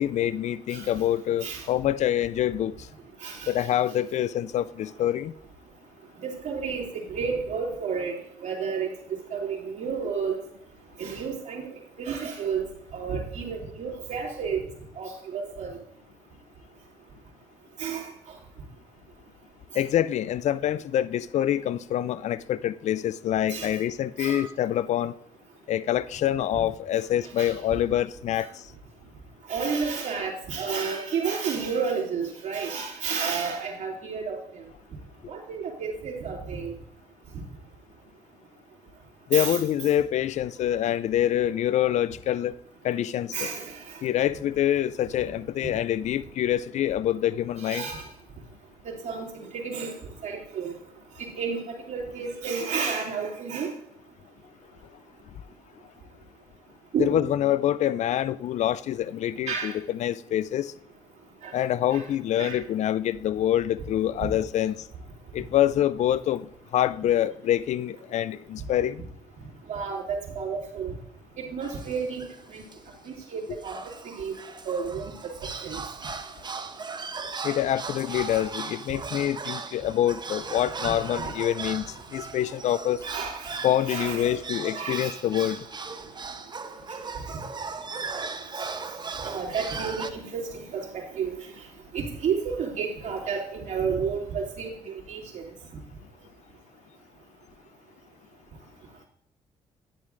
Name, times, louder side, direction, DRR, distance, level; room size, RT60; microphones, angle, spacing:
voice 1, 0.0-2.7 3.5-5.3 19.7-25.1 25.7-28.5 39.3-42.6 42.8-43.5 44.0-47.9 57.0-60.7 61.5-64.7 65.3-69.0 77.4-81.8 82.1-83.0 83.6-85.6, left 11 dB, 60° left, 0.4 m, -26 dB
voice 2, 3.2-3.5 6.2-8.9 9.3-10.4 11.0-11.7 12.0-12.7 12.9-14.6 15.0-15.7 17.8-18.0 23.5-23.7 24.2-24.5 26.5-26.6 27.4-27.5 29.5-34.4 35.3-36.7 39.3-39.6 43.3-44.0 45.6-45.7 47.6-48.0 48.8-49.9 50.2-50.7 51.4-53.7 56.9-57.3 59.5-59.7 61.4-61.5 61.9-62.0 62.4-62.6 64.2-64.3 69.7-70.9 71.4-72.6 73.1-74.3 74.7-75.0 75.6-75.8 80.9-81.0 83.0-83.5 83.8-84.3 84.7-85.1 89.2-91.4 91.9-95.4, right 6 dB, 65° right, 2.5 m, -31 dB
sound 1, 71.6-72.4 72.7-72.8 73.1-73.2 73.6-90.1, right 4 dB, 35° right, 0.8 m, -37 dB
9.8 x 9.8 x 2.5 m
supercardioid pair, 55°, 13 cm